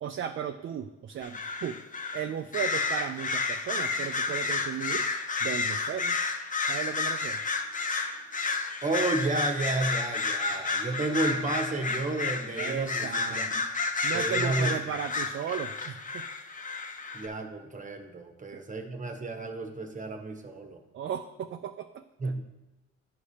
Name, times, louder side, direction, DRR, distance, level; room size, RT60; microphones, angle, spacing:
voice 1, 0.0-1.8 2.1-5.0 5.4-6.2 6.6-7.4 12.6-13.6 14.0-16.2 18.5-18.6 20.9-22.3, right 8 dB, 40° right, 6 dB, 0.4 m, -35 dB
sound 1, 1.2-2.2 2.5-17.3, left 4 dB, 25° left, 0.7 m, -31 dB
voice 2, 8.8-13.6 14.1-14.7 17.1-20.8 22.2-22.4, right 2 dB, 25° right, 4 dB, 1.1 m, -32 dB
sound 2, 9.6-16.6, equal, 85° left, 2.5 m, -54 dB
11.5 x 4.8 x 2.8 m, 1.1 s
cardioid pair, 90°, 30 cm